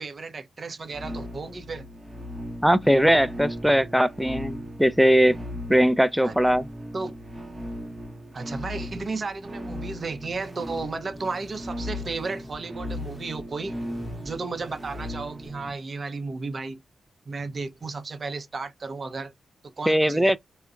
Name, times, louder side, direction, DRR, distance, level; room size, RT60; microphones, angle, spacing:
voice 1, 0.0-1.9 6.2-6.3 6.9-7.1 8.3-13.7 14.2-16.8 17.3-19.3 19.6-20.3, right 3 dB, 50° right, 0.7 m, -34 dB
sound 1, 0.9-15.7, equal, 25° right, 1.0 m, -37 dB
voice 2, 2.6-5.4 5.7-6.7 19.9-20.4, equal, 5° right, 0.5 m, -20 dB
sound 2, 10.3-15.5, left 1 dB, 15° left, 0.9 m, -49 dB
3.5 x 2.1 x 2.4 m
supercardioid pair, 45°, 0 cm